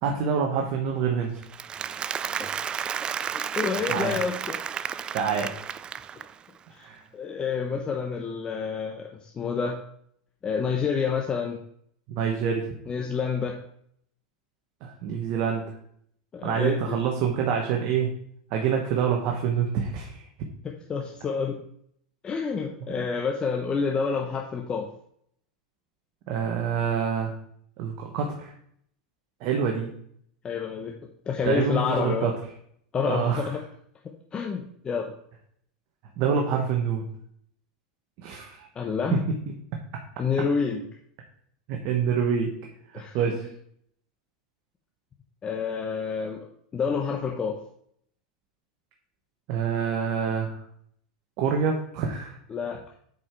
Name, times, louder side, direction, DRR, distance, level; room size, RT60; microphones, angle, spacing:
voice 1, 0.0-1.4 3.9-4.2 5.1-5.5 6.8-7.0 12.1-12.7 14.8-15.7 16.4-18.1 18.5-20.2 22.9-23.0 26.3-27.4 27.8-28.5 29.4-29.9 31.4-32.3 33.0-33.5 36.2-37.0 38.2-38.7 39.1-39.2 41.7-42.5 43.1-43.5 49.5-50.6 51.4-52.3, right 7 dB, 55° right, 1 dB, 1.3 m, -26 dB
Applause, 1.4-6.5, right 8 dB, 25° right, 0.3 m, -32 dB
voice 2, 3.3-4.6 6.7-6.9 7.1-9.8 10.4-11.6 12.9-13.6 16.3-16.9 20.6-21.6 22.2-24.9 30.4-30.9 31.3-32.3 32.9-33.6 34.3-35.1 38.7-39.2 40.2-40.8 42.9-43.4 45.4-46.4 46.7-47.6 52.5-52.8, left 5 dB, 25° left, 1 dB, 0.9 m, -28 dB
8.3 x 5.0 x 4.6 m, 0.67 s
supercardioid pair, 125°, 4 cm